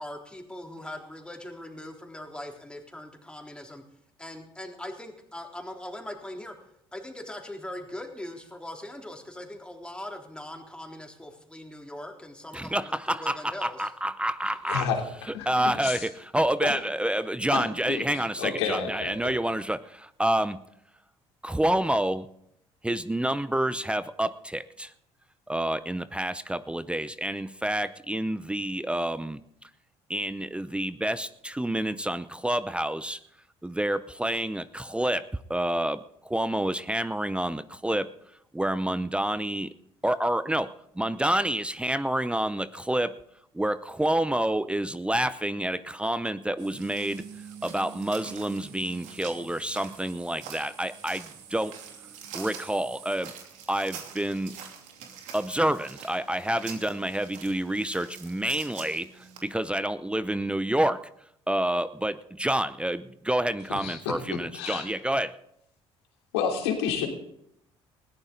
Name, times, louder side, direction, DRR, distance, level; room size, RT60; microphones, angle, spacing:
voice 1, 0.0-3.8 4.2-6.6 6.9-12.8 13.1-13.9, left 1 dB, 5° left, 1 dB, 3.7 m, -40 dB
voice 2, 12.5-14.9 15.3-20.6 21.4-22.3 22.8-24.9 25.5-29.4 30.1-33.2 33.6-38.1 38.5-39.7 40.0-43.2 43.5-47.3 47.6-51.7 52.3-53.3 53.7-54.6 55.3-61.0 61.5-65.4, right 1 dB, 10° right, 14 dB, 0.7 m, -28 dB
voice 3, 14.7-15.0 15.3-16.0 16.6-16.7 17.5-17.6 17.9-19.3 63.7-64.9 66.3-67.1, left 7 dB, 90° left, 2 dB, 3.2 m, -30 dB
sound 1, 46.6-59.4, right 8 dB, 75° right, 2.8 m, -45 dB
20.5 x 14.5 x 3.9 m, 0.73 s
supercardioid pair, 70°, 13 cm